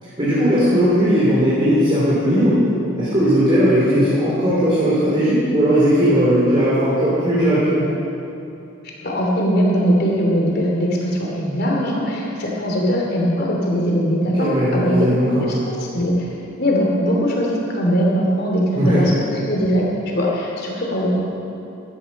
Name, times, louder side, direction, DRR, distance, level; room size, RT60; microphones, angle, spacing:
voice 1, 0.0-2.7 3.0-8.0 14.2-15.7 18.7-19.1, equal, 25° right, -9 dB, 3.0 m, -17 dB
voice 2, 9.0-15.1 15.4-16.3 16.6-19.8 20.1-21.2, equal, 50° left, -2 dB, 3.0 m, -20 dB
14.0 x 12.5 x 5.4 m, 2.8 s
head